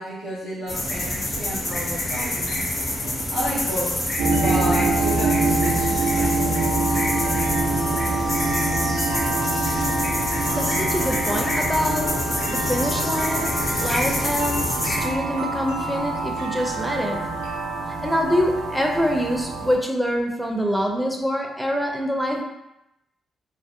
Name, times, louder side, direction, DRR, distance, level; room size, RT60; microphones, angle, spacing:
voice 1, 0.0-2.6 3.3-4.0 4.3-7.3, equal, 85° left, -11 dB, 0.7 m, -32 dB
sound 1, 0.7-15.0, left 1 dB, 55° left, 0.9 m, -27 dB
sound 2, 4.2-19.8, right 2 dB, 85° right, 0.4 m, -25 dB
voice 2, 10.6-17.4 17.9-22.4, equal, ahead, 0 dB, 0.5 m, -25 dB
2.5 x 2.1 x 2.6 m, 0.88 s
hypercardioid pair, 45°, 0 cm